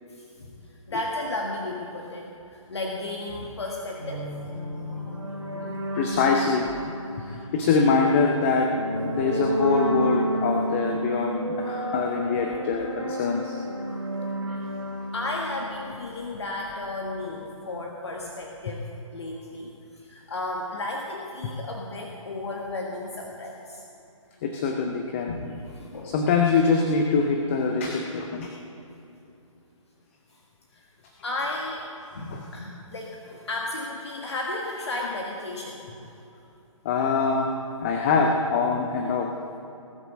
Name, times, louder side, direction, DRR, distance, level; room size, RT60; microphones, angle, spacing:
voice 1, 0.1-4.3 15.1-23.8 25.3-26.1 30.3-30.4 30.7-30.9 31.2-31.9 32.1-36.1, left 2 dB, 55° left, 0 dB, 1.5 m, -34 dB
sound 1, 4.0-16.5, right 1 dB, 65° right, 3.8 m, -31 dB
voice 2, 5.9-8.7 9.0-13.6 21.4-21.5 24.4-25.3 26.0-28.5 32.3-32.4 36.8-37.5 37.8-39.3, left 4 dB, 25° left, 2 dB, 0.8 m, -24 dB
19.5 x 8.0 x 6.4 m, 2.8 s
figure-of-eight pair, 135°, 17 cm